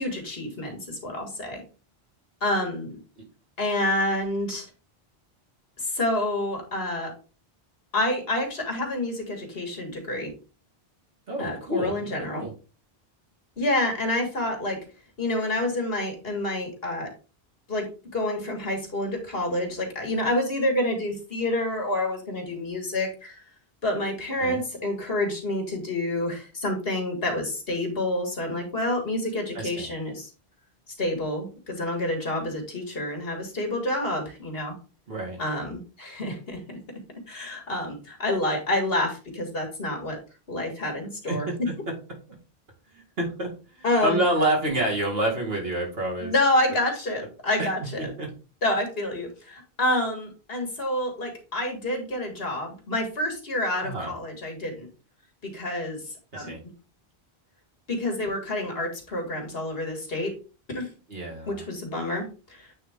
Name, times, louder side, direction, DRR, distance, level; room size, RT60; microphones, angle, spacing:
voice 1, 0.0-1.6 2.4-3.0 3.6-4.6 5.8-7.1 7.9-10.3 11.4-12.4 13.6-14.8 15.2-17.1 17.7-17.9 18.1-23.4 23.8-30.3 31.0-34.7 35.4-36.8 37.3-40.2 40.5-41.7 43.8-44.2 46.2-48.1 48.6-54.9 55.4-56.0 56.3-56.6 57.9-60.3 60.7-60.9 61.5-62.7, left 1 dB, 65° left, 2 dB, 2.1 m, -28 dB
voice 2, 11.3-12.5 24.4-24.6 29.5-29.9 35.1-35.4 41.3-41.5 41.9-42.0 42.9-46.3 47.6-47.7 48.0-48.3 53.8-54.1 56.3-56.6 61.1-61.6, right 1 dB, 70° right, -1 dB, 2.2 m, -28 dB
8.6 x 3.6 x 3.5 m, 0.34 s
omnidirectional pair, 1.1 m